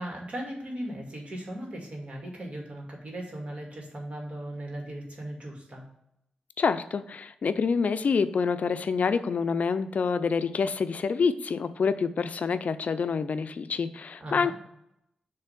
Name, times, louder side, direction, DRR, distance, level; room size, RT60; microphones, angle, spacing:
voice 1, 0.0-5.8 14.2-14.5, right 1 dB, 50° right, -1 dB, 2.3 m, -38 dB
voice 2, 6.6-14.5, left 5 dB, 65° left, 11 dB, 0.4 m, -27 dB
6.9 x 3.3 x 5.7 m, 0.79 s
cardioid pair, 70°, 3 cm